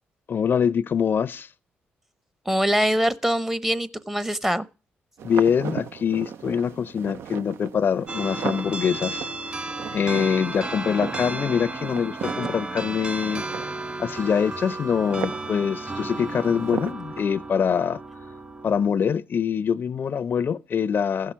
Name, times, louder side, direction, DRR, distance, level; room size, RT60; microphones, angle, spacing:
voice 1, 0.3-1.5 5.2-9.3 9.9-13.7 14.0-18.0 18.6-21.3, left 7 dB, 55° left, 0.5 m, -24 dB
voice 2, 2.5-4.7, equal, 10° right, 0.8 m, -23 dB
sound 1, 5.2-16.9, right 8 dB, 75° right, 0.6 m, -37 dB
sound 2, 8.1-18.9, right 2 dB, 30° right, 2.1 m, -34 dB
15.0 x 5.7 x 6.1 m
cardioid pair, 70°, 4 cm